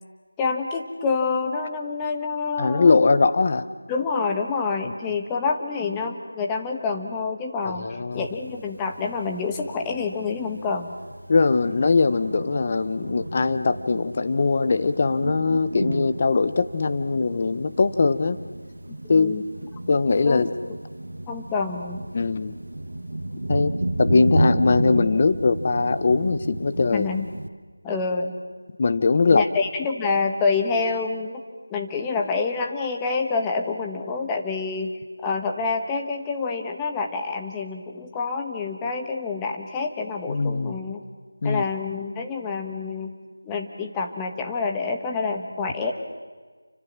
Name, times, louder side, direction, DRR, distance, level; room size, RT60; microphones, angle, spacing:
voice 1, 0.4-2.9 3.9-10.9 19.0-19.4 20.3-20.5 21.3-22.1 26.9-27.3 27.8-28.4 29.3-31.4 31.7-41.0 41.4-43.1 43.4-45.9, left 4 dB, 10° left, 3 dB, 1.3 m, -27 dB
voice 2, 2.6-3.7 4.8-4.9 7.6-8.3 11.3-18.4 19.1-19.4 19.9-20.5 22.1-22.6 23.5-27.1 28.8-29.5 40.3-40.8 41.4-41.6, left 4 dB, 25° left, 11 dB, 1.0 m, -21 dB
Thunder, 8.1-27.5, right 1 dB, 75° right, 1.9 m, -32 dB
29.0 x 25.0 x 7.5 m, 1.4 s
figure-of-eight pair, 175°, 0 cm